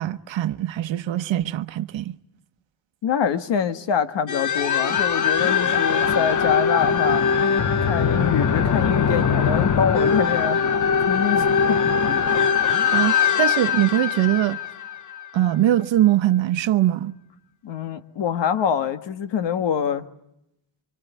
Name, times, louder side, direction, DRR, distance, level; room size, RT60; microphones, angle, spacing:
voice 1, 0.0-2.2 12.9-14.6 15.3-17.1, right 13 dB, 90° right, 1.0 m, -22 dB
voice 2, 3.0-7.2 7.8-10.6 11.1-11.8 12.1-12.4 17.6-20.1, left 8 dB, 70° left, 1.6 m, -25 dB
sound 1, 4.3-15.5, left 6 dB, 40° left, 1.1 m, -21 dB
25.5 x 25.0 x 9.4 m
wide cardioid pair, 180°, 45 cm